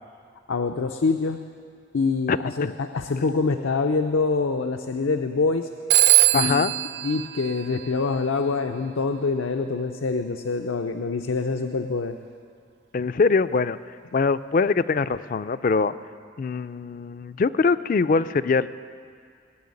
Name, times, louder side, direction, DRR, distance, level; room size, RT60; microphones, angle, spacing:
voice 1, 0.5-1.4 1.9-5.7 6.3-6.7 7.0-12.1, left 4 dB, 85° left, 6 dB, 0.6 m, -25 dB
voice 2, 2.3-2.7 6.3-6.7 12.9-13.8 14.1-15.9 16.4-18.7, left 4 dB, 45° left, 15 dB, 0.3 m, -23 dB
Telephone, 5.9-8.4, right 15 dB, 55° right, 0.4 m, -21 dB
18.5 x 7.1 x 9.6 m, 2.2 s
head